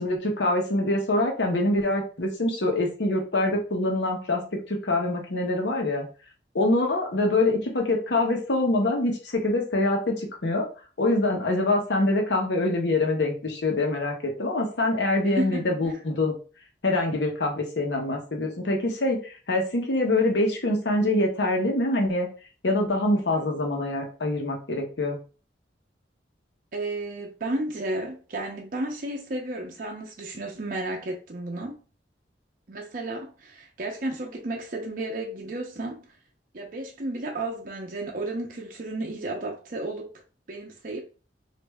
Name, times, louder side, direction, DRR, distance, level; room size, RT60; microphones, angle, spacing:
voice 1, 0.0-4.4 4.7-6.1 6.5-10.7 11.0-16.3 16.8-19.2 19.5-22.3 22.6-25.2, left 2 dB, 80° left, 0.9 m, -25 dB
voice 2, 15.2-16.0 26.7-31.8 32.7-36.0 36.5-40.1 40.5-41.0, right 2 dB, 50° right, 0.6 m, -33 dB
3.1 x 2.5 x 3.4 m
head